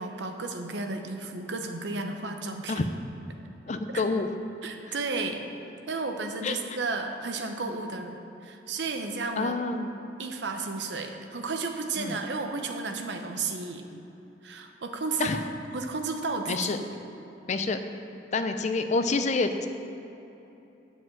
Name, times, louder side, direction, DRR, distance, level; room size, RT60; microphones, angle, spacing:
voice 1, 0.0-2.9 3.9-4.0 4.6-5.4 5.9-9.6 10.2-13.8 14.4-15.4 15.7-16.6, right 3 dB, 70° right, 5 dB, 0.7 m, -33 dB
voice 2, 3.7-4.3 6.4-6.6 9.4-9.9 12.0-12.2 15.2-15.4 16.5-16.8 17.5-17.8 18.3-19.7, left 3 dB, 40° left, 8 dB, 0.5 m, -27 dB
7.9 x 4.9 x 7.3 m, 3.0 s
head